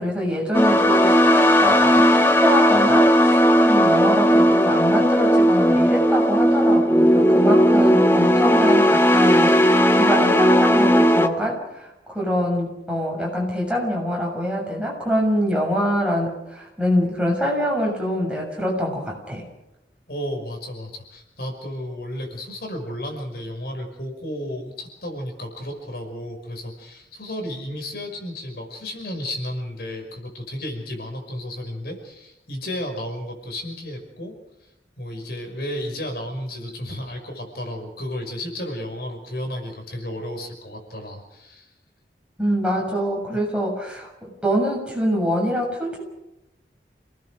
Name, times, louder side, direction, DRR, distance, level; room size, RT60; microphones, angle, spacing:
voice 1, 0.0-19.4 42.4-46.0, equal, 5° right, -2 dB, 7.0 m, -24 dB
sound 1, 0.5-11.3, equal, 15° left, 1.3 m, -16 dB
voice 2, 20.1-34.7 35.0-41.7, left 1 dB, 60° left, 3 dB, 5.7 m, -33 dB
28.5 x 19.5 x 6.5 m, 0.88 s
head